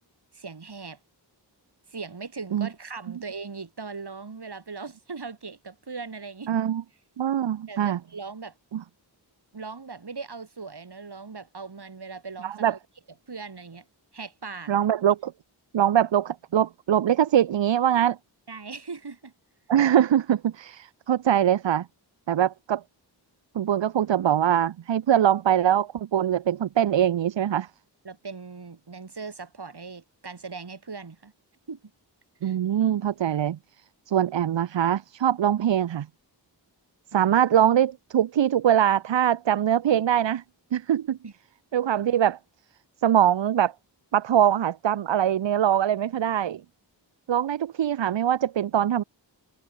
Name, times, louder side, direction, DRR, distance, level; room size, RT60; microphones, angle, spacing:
voice 1, 0.3-1.0 1.9-6.5 7.7-8.5 9.5-12.8 13.3-13.9 14.1-14.7 18.5-19.3 28.0-31.3 31.7-31.8 32.4-32.6 37.1-37.4 41.2-41.3, right 4 dB, 60° right, 5.3 m, -39 dB
voice 2, 6.5-6.8 7.2-8.0 8.7-8.8 12.4-12.7 14.7-15.3 15.7-18.2 19.7-21.9 22.3-22.8 23.5-27.7 32.4-33.6 34.1-36.1 37.1-40.4 40.7-41.2 41.7-42.4 43.0-43.7 44.1-46.6 47.3-49.0, right 10 dB, 80° right, 0.7 m, -22 dB
wide cardioid pair, 85°, 44 cm